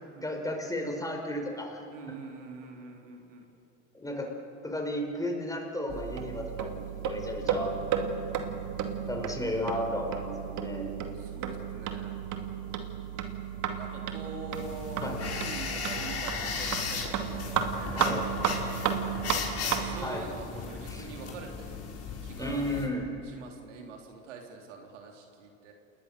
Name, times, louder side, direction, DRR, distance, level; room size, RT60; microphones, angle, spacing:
voice 1, 0.2-1.9 3.9-4.3 4.6-7.7 9.1-11.0 15.0-15.2 17.9-18.2 20.0-20.2 20.8-21.1 22.4-23.1, left 1 dB, 10° left, 2 dB, 5.1 m, -33 dB
voice 2, 1.9-3.5 11.1-12.1 13.7-21.8 22.2-22.7 23.2-25.7, right 4 dB, 90° right, 2 dB, 3.5 m, -45 dB
sound 1, 5.9-20.1, right 7 dB, 55° right, 2.4 m, -33 dB
sound 2, 14.5-22.9, left 5 dB, 40° left, 5.2 m, -36 dB
28.0 x 20.5 x 6.7 m, 2.8 s
hypercardioid pair, 90°, 36 cm